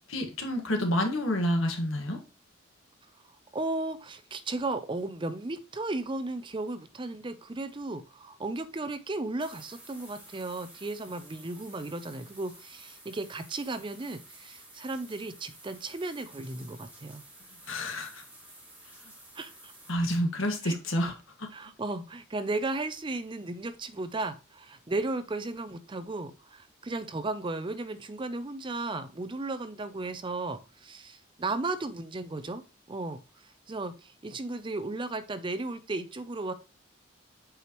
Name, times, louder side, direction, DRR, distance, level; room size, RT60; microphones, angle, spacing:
voice 1, 0.1-2.2 17.6-18.2 19.0-19.1 19.9-21.5, equal, 80° left, 4 dB, 1.6 m, -29 dB
voice 2, 3.5-17.2 19.3-19.7 20.6-20.8 21.5-32.6 32.9-36.5, right 2 dB, 25° right, 12 dB, 0.5 m, -35 dB
sound 1, 9.4-19.9, right 1 dB, 5° right, 1.8 m, -52 dB
8.0 x 4.8 x 3.0 m, 0.31 s
head